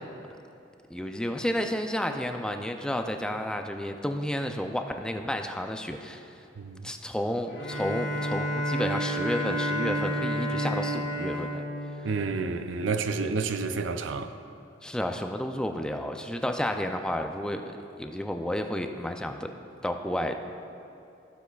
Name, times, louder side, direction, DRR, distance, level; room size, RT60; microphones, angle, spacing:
voice 1, 0.9-6.3 6.8-11.6 14.8-17.7 18.0-19.5 19.8-20.3, left 1 dB, 5° left, 0.4 m, -31 dB
voice 2, 6.6-6.9 12.0-14.3, right 4 dB, 80° right, 0.5 m, -30 dB
Bowed string instrument, 7.5-12.7, equal, 75° left, 1.5 m, -31 dB
16.0 x 7.1 x 2.3 m
head